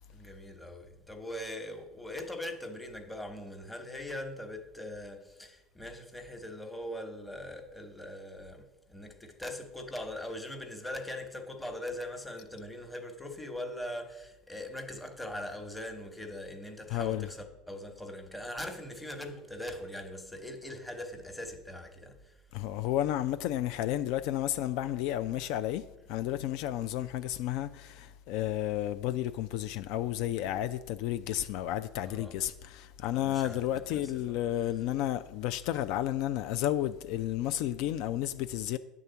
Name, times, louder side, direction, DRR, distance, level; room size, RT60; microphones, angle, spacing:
voice 1, 0.1-22.3 32.0-32.3 33.1-34.4, left 1 dB, 5° left, 1.0 m, -41 dB
voice 2, 16.9-17.3 22.5-38.8, left 12 dB, 65° left, 0.3 m, -32 dB
9.0 x 3.6 x 6.8 m
supercardioid pair, 115°, 0 cm